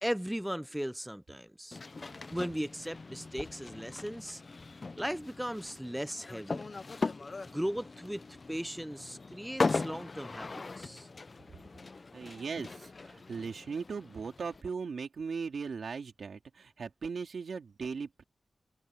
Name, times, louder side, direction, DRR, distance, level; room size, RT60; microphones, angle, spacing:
voice 1, 0.0-1.8 2.3-4.4 5.0-6.6 7.5-8.2 8.5-11.1, equal, 5° right, 0.4 m, -37 dB
sound 1, 1.7-14.6, left 3 dB, 40° left, 0.6 m, -39 dB
voice 2, 12.1-18.2, right 5 dB, 75° right, 3.3 m, -38 dB
open air
wide cardioid pair, 105°, 0 cm